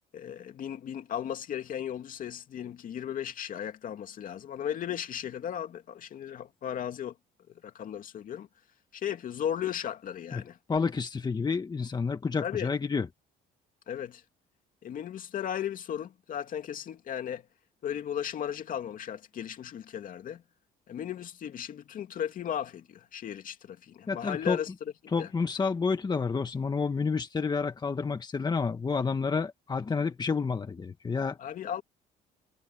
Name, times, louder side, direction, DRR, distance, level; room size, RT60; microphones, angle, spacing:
voice 1, 0.1-7.2 7.6-8.5 8.9-10.6 12.4-12.7 13.9-14.2 14.8-17.5 17.8-20.4 20.9-25.3 31.4-31.8, left 9 dB, 55° left, 2.6 m, -36 dB
voice 2, 10.7-13.1 24.1-24.6 25.1-31.4, left 5 dB, 25° left, 1.6 m, -29 dB
cardioid pair, 110°, 17 cm